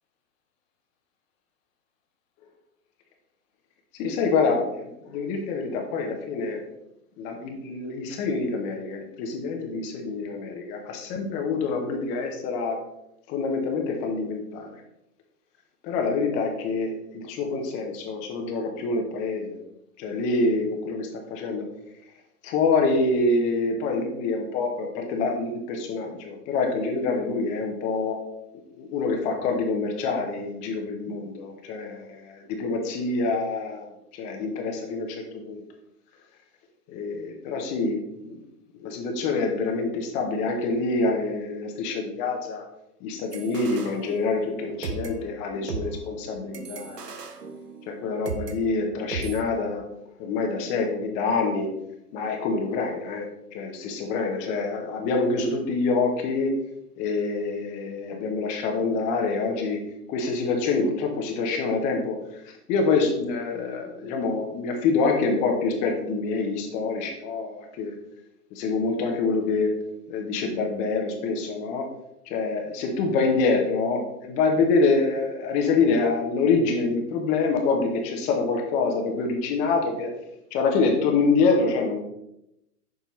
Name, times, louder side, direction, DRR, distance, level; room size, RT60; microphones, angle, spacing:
voice 1, 3.9-6.6 7.2-12.8 13.3-14.8 15.8-19.6 20.0-21.7 22.4-28.2 28.8-35.6 36.9-38.4 38.8-42.7 43.0-47.2 47.9-49.8 50.2-51.7 52.1-56.6 57.0-59.8 60.1-68.0 68.5-69.7 70.1-71.9 72.3-80.1 80.5-82.0, left 4 dB, 15° left, 3 dB, 0.6 m, -26 dB
sound 1, 43.3-44.5 44.8-48.6 49.1-49.4, right 5 dB, 85° right, 1.0 m, -36 dB
7.0 x 5.4 x 3.0 m, 0.84 s
hypercardioid pair, 130°, 47 cm